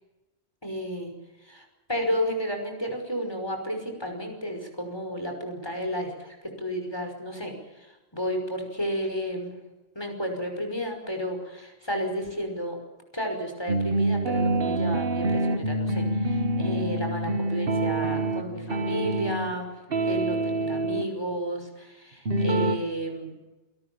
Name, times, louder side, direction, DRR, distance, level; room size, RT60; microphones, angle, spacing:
voice 1, 0.6-1.1 1.4-9.6 10.0-12.8 13.1-19.7 20.0-23.3, equal, 25° left, 4 dB, 5.7 m, -32 dB
sound 1, 13.7-19.5 19.9-21.0 22.3-22.8, right 2 dB, 60° right, 1.6 m, -26 dB
27.5 x 19.5 x 7.2 m, 1.1 s
omnidirectional pair, 1.1 m